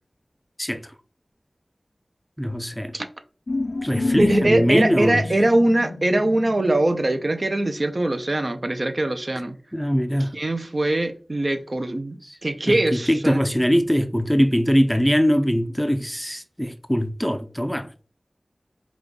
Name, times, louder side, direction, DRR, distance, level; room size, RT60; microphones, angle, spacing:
voice 1, 2.4-2.9 3.8-5.2 9.7-10.3 12.3-12.4 12.7-18.0, equal, ahead, 0.4 m, -22 dB
sound 1, 3.5-8.0, left 2 dB, 75° left, 0.3 m, -30 dB
voice 2, 4.2-9.6 10.3-12.2 12.4-13.4, right 1 dB, 50° right, 0.6 m, -22 dB
5.1 x 2.3 x 3.8 m
wide cardioid pair, 50°, 0 cm